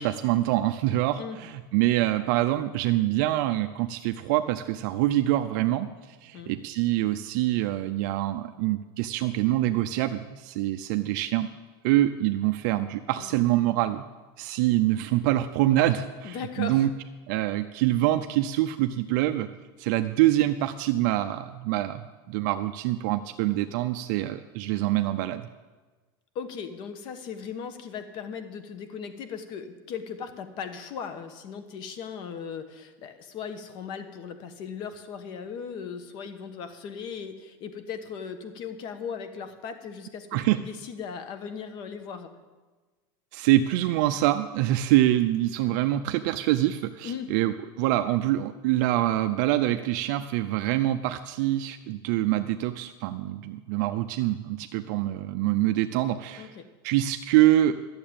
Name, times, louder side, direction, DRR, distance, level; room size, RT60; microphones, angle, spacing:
voice 1, 0.0-11.5 11.8-14.0 14.4-16.9 17.3-19.5 19.8-22.0 22.3-25.5 40.3-40.6 43.3-56.5 56.8-57.8, right 14 dB, 55° right, 8 dB, 0.5 m, -25 dB
voice 2, 16.2-16.9 26.3-42.3 47.0-47.3 56.4-56.7, left 6 dB, 40° left, 9 dB, 1.2 m, -38 dB
12.0 x 7.3 x 8.7 m, 1.3 s
supercardioid pair, 160°, 12 cm